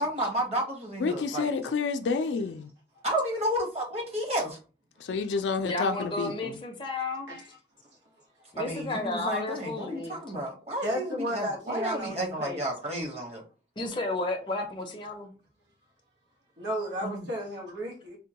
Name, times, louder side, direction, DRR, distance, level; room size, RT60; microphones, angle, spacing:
voice 1, 0.0-1.5 3.0-4.6 8.6-13.4 17.0-17.2, right 1 dB, 35° right, 1.0 m, -31 dB
voice 2, 1.0-2.7 5.0-6.6, left 4 dB, 85° left, 0.4 m, -29 dB
voice 3, 5.6-7.4 8.5-10.2 13.8-15.3, left 2 dB, 25° left, 0.5 m, -32 dB
voice 4, 10.8-12.7 16.6-18.2, equal, 80° right, 1.3 m, -33 dB
3.5 x 2.2 x 2.8 m
head